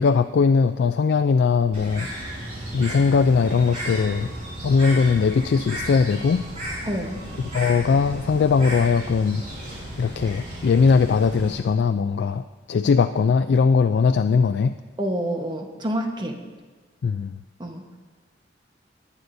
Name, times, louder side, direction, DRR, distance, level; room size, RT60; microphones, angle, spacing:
voice 1, 0.0-2.1 2.7-4.3 4.6-6.4 7.5-9.4 10.0-14.8 17.0-17.4, left 5 dB, 70° left, 9 dB, 0.3 m, -20 dB
Bird, 1.7-11.5, equal, 45° right, 4.2 m, -34 dB
voice 2, 6.8-7.2 15.0-16.4 17.6-17.8, right 1 dB, 25° right, 3 dB, 1.1 m, -28 dB
19.5 x 9.3 x 2.6 m, 1.3 s
head